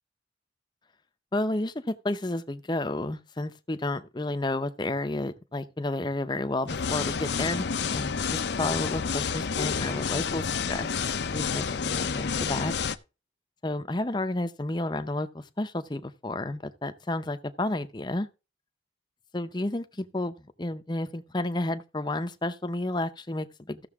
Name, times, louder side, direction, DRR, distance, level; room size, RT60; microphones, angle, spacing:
voice 1, 1.3-10.9 11.3-12.7 13.6-18.3 19.3-23.9, left 2 dB, 25° left, 0.6 m, -31 dB
sound 1, 6.7-13.0, left 6 dB, 60° left, 0.6 m, -29 dB
14.5 x 6.8 x 3.6 m
head